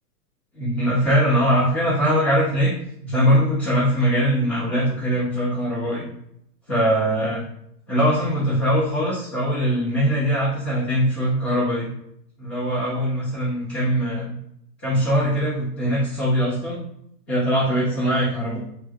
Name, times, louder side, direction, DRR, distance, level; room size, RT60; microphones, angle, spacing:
voice 1, 0.5-2.7 3.0-6.1 6.7-7.4 7.9-11.9 12.4-14.4 14.8-16.8 17.3-18.6, equal, 15° left, -13 dB, 0.6 m, -21 dB
3.2 x 2.2 x 3.3 m, 0.74 s
hypercardioid pair, 175°, 48 cm